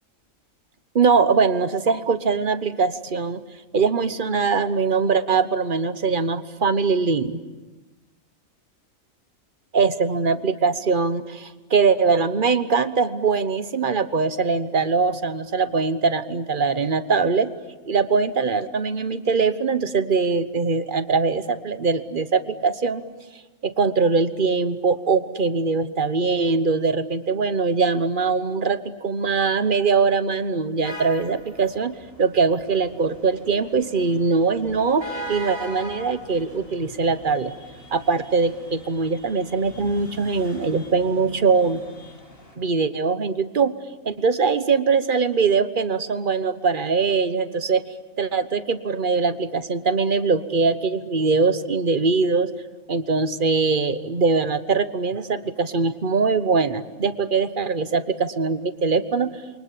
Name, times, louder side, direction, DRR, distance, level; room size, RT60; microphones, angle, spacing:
voice 1, 0.9-3.4 3.7-7.4 9.7-17.5 17.9-23.0 23.6-37.5 37.9-41.8 42.6-43.7 44.0-47.8 48.2-52.5 52.9-59.3, right 4 dB, 40° right, 12 dB, 1.2 m, -22 dB
sound 1, 30.8-42.5, equal, 45° left, 6.2 m, -41 dB
29.0 x 24.0 x 8.6 m, 1.2 s
omnidirectional pair, 1.4 m